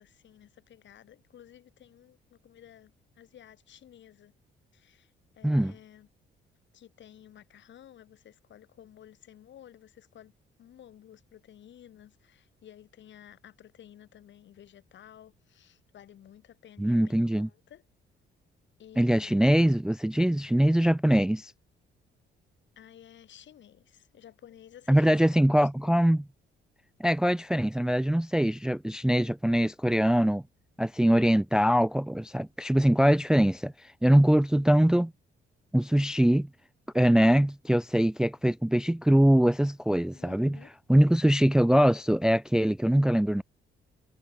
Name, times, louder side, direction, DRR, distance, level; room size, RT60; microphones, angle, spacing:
voice 1, 0.0-4.3 4.7-6.1 6.7-10.3 10.6-17.8 18.8-19.4 22.8-25.6 25.8-26.0 34.0-34.3 40.1-40.7, left 10 dB, 65° left, 2.6 m, -53 dB
voice 2, 16.8-17.5 19.0-21.5 24.9-26.2 27.0-30.4 30.8-35.1 35.7-36.5 36.9-40.6 40.9-43.4, right 1 dB, 5° right, 0.4 m, -23 dB
cardioid pair, 90°, 20 cm